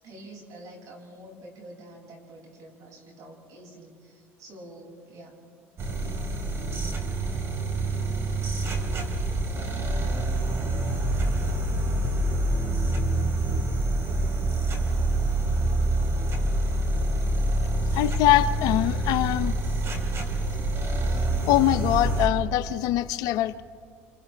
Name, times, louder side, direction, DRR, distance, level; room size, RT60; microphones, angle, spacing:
voice 1, 0.0-5.4, right 1 dB, 55° right, -1 dB, 6.7 m, -47 dB
sound 1, 5.8-22.3, right 1 dB, 40° right, 3.7 m, -26 dB
voice 2, 17.9-19.6 21.5-23.6, left 14 dB, 65° left, 14 dB, 0.7 m, -23 dB
30.0 x 27.0 x 3.4 m, 2.2 s
supercardioid pair, 85°, 7 cm